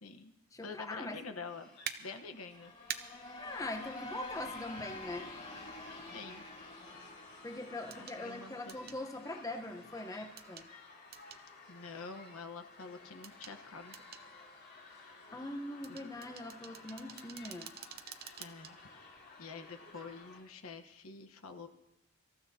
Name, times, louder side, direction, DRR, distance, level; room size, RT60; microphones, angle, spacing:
voice 1, 0.0-0.3 0.6-2.7 4.8-4.9 6.1-6.4 8.0-8.8 11.7-14.0 15.0-15.3 15.9-16.1 18.4-18.8 19.4-21.7, left 4 dB, 90° left, 7 dB, 1.1 m, -47 dB
voice 2, 0.5-1.2 3.4-5.3 7.4-10.7 15.3-17.7, left 2 dB, 15° left, 5 dB, 1.0 m, -42 dB
sound 1, 1.4-20.4, left 3 dB, 55° left, 3.5 m, -55 dB
sound 2, 1.9-2.0 2.9-3.0 5.0-5.1 7.9-8.2 8.7-9.0 10.4-10.7 11.1-11.4 13.2-13.6 13.9-14.2 15.8-18.7 19.2-19.3, right 9 dB, 50° right, 0.8 m, -45 dB
sound 3, 2.4-9.2, left 2 dB, 30° left, 4.4 m, -48 dB
25.5 x 14.0 x 2.8 m, 0.89 s
head